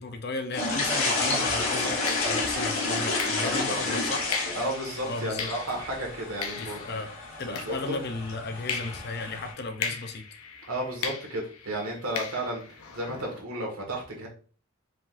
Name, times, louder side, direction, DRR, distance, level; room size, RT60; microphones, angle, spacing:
voice 1, 0.0-4.3 5.0-5.5 6.6-7.1 7.4-10.2, left 3 dB, 45° left, 7 dB, 0.6 m, -35 dB
sound 1, 0.5-9.5, left 3 dB, 70° left, 1.3 m, -30 dB
sound 2, 0.9-1.1 2.1-8.2 8.7-13.4, left 5 dB, 85° left, 0.8 m, -38 dB
voice 2, 3.4-3.9 4.6-7.0 7.4-8.0 10.6-14.3, right 1 dB, 80° right, 0 dB, 1.6 m, -33 dB
4.7 x 3.7 x 2.5 m, 0.40 s
head